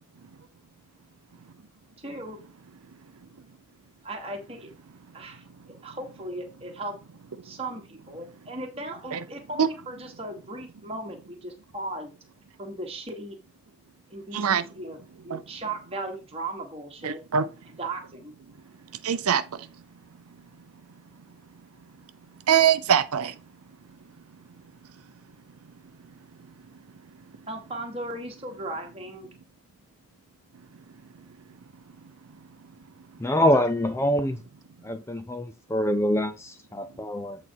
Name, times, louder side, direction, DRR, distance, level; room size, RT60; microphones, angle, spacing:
voice 1, 2.0-2.4 4.0-4.7 5.1-5.4 5.8-6.9 7.4-12.2 12.6-13.4 14.1-15.0 15.2-17.2 17.8-18.3 27.5-29.3, right 2 dB, 25° right, 1.5 m, -37 dB
voice 2, 14.3-14.6 15.3-15.4 17.0-17.5 19.0-19.7 22.5-23.3, right 8 dB, 90° right, 0.6 m, -23 dB
voice 3, 33.2-34.4 34.8-37.4, left 1 dB, 10° left, 0.4 m, -25 dB
8.1 x 4.2 x 4.5 m
head